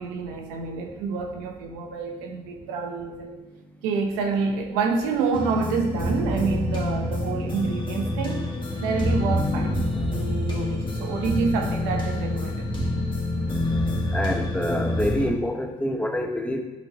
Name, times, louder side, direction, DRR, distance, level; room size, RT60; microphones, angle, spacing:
voice 1, 0.0-3.4 3.8-8.5 8.8-9.8 10.1-12.7, right 4 dB, 85° right, 3 dB, 0.9 m, -28 dB
sound 1, 5.3-15.3, left 1 dB, 30° left, 2.1 m, -27 dB
voice 2, 14.1-16.6, left 1 dB, 10° left, 3 dB, 1.2 m, -26 dB
10.5 x 5.1 x 3.0 m, 1.1 s
hypercardioid pair, 50°, 16 cm